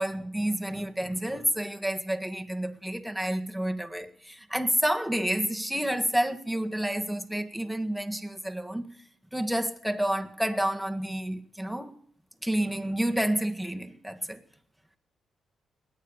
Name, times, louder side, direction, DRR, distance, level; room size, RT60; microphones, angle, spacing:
voice 1, 0.0-8.9 9.3-12.0 12.4-14.4, right 1 dB, ahead, 1.7 m, -29 dB
20.5 x 9.6 x 6.8 m
supercardioid pair, 65°, 0 cm